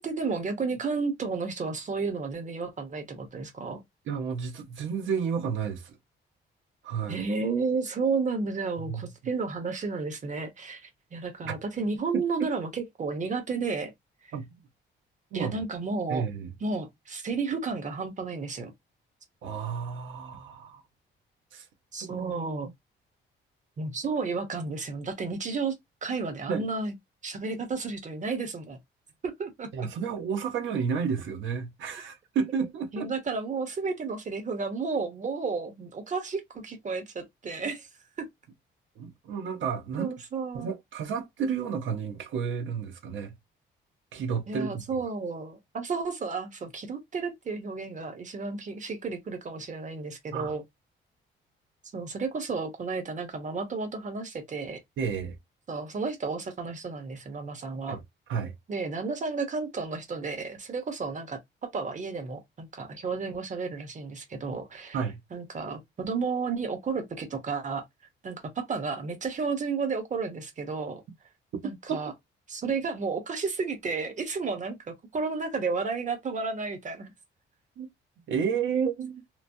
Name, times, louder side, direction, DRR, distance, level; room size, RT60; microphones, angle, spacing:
voice 1, 0.0-3.8 7.1-13.9 15.3-16.3 16.6-18.7 21.9-22.7 23.8-25.7 26.0-26.9 27.2-28.8 29.2-29.7 32.9-37.9 38.2-38.3 40.0-40.7 44.5-50.6 51.9-54.8 55.7-58.0 58.7-61.4 61.7-65.0 65.3-67.8 68.2-71.0 71.6-72.1 72.5-77.1, right 4 dB, 40° right, 0.9 m, -32 dB
voice 2, 4.1-6.0 6.8-7.2 8.8-9.1 11.4-11.6 14.3-14.4 15.3-15.6 16.1-16.5 19.4-20.8 21.5-21.7 22.0-22.5 26.5-26.6 29.7-33.1 39.0-40.1 40.5-43.3 44.1-44.8 50.3-50.5 55.0-55.4 57.9-58.0 58.3-58.5 64.9-65.2 71.6-72.1 77.8-77.9 78.3-79.2, right 6 dB, 75° right, 0.9 m, -31 dB
3.1 x 2.1 x 2.6 m
cardioid pair, 90°, 20 cm